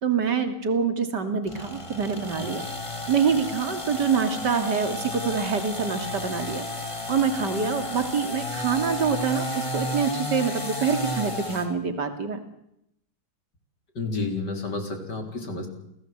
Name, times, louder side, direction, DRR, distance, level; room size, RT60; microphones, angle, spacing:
voice 1, 0.0-2.6 3.1-6.6 7.1-12.4, right 6 dB, 85° right, 8 dB, 3.0 m, -25 dB
sound 1, 1.5-11.7, left 1 dB, 15° left, 2.9 m, -33 dB
voice 2, 14.0-15.7, left 3 dB, 90° left, 5 dB, 4.6 m, -30 dB
28.5 x 18.0 x 8.0 m, 0.78 s
omnidirectional pair, 1.8 m